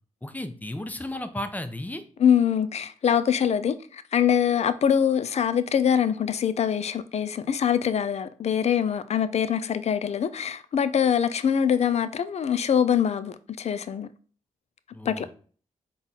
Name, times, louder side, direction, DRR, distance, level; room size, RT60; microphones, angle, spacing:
voice 1, 0.2-2.0 14.9-15.3, left 1 dB, 10° left, 0.6 m, -34 dB
voice 2, 2.2-14.1 15.1-15.3, left 8 dB, 50° left, 0.4 m, -24 dB
3.9 x 2.3 x 4.0 m
supercardioid pair, 45°, 14 cm